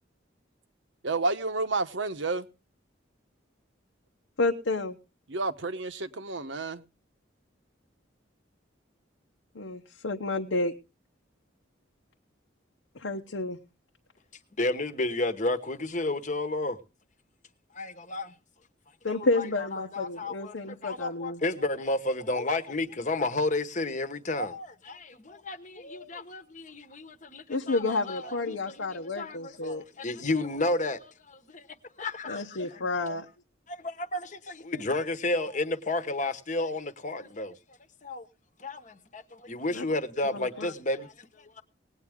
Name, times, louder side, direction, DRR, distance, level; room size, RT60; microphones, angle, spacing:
voice 1, 1.0-2.5 5.3-6.8, right 3 dB, 75° right, 1.0 m, -30 dB
voice 2, 4.4-5.0 9.5-10.7 12.9-13.6 19.0-21.4 27.5-29.8 32.3-33.3 39.7-39.8 40.3-40.7, left 2 dB, 85° left, 1.0 m, -30 dB
voice 3, 14.6-16.8 17.7-18.3 19.1-31.7 32.0-32.8 33.7-37.6 38.0-38.3 38.6-41.6, left 2 dB, 40° left, 1.1 m, -32 dB
19.0 x 9.2 x 3.6 m
head